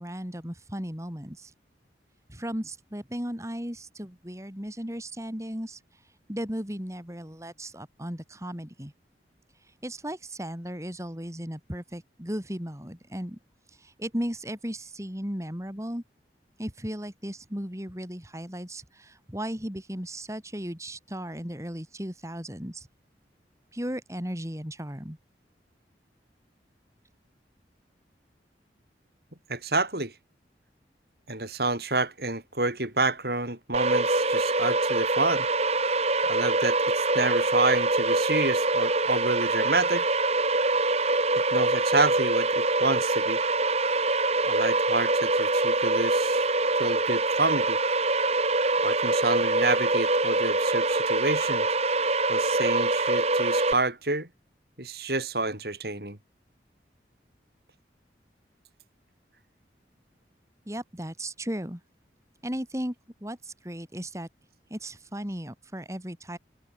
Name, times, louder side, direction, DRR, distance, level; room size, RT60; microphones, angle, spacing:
voice 1, 0.0-1.5 2.3-5.8 6.3-8.9 9.8-13.4 13.8-16.0 16.6-22.9 23.7-25.2 60.7-61.8 62.4-62.9 63.2-64.3 64.7-66.4, equal, 15° right, 4.5 m, -36 dB
voice 2, 29.5-30.1 31.3-35.5 36.3-40.1 41.5-43.4 44.4-46.4 46.8-47.8 48.8-51.7 52.3-54.3 54.8-56.2, right 2 dB, 60° right, 5.8 m, -28 dB
sound 1, 33.7-53.7, right 2 dB, 35° right, 4.7 m, -24 dB
head